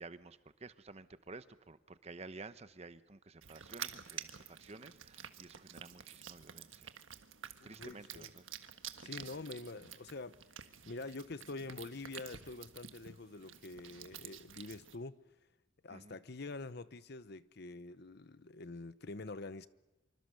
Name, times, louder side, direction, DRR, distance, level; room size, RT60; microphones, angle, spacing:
voice 1, 0.0-6.9 7.6-8.5 9.0-9.1 15.9-16.2, right 3 dB, 35° right, 0.9 m, -52 dB
sound 1, 3.4-15.0, right 9 dB, 90° right, 1.5 m, -50 dB
voice 2, 7.6-8.3 9.0-15.2 15.8-19.7, left 3 dB, 55° left, 0.8 m, -46 dB
26.5 x 24.5 x 6.6 m
head